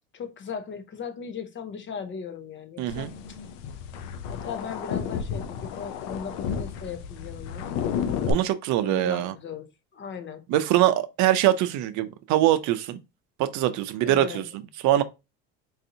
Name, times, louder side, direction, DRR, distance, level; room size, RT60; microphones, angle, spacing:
voice 1, 0.1-3.4 4.3-7.7 8.8-10.4 14.0-14.5, left 6 dB, 35° left, 0.8 m, -38 dB
voice 2, 2.8-3.1 8.3-9.3 10.5-13.0 13.4-14.4 14.8-15.0, right 13 dB, 65° right, 0.5 m, -23 dB
sound 1, 2.9-8.3, left 7 dB, 85° left, 0.6 m, -32 dB
3.9 x 2.7 x 2.6 m
supercardioid pair, 100°, 32 cm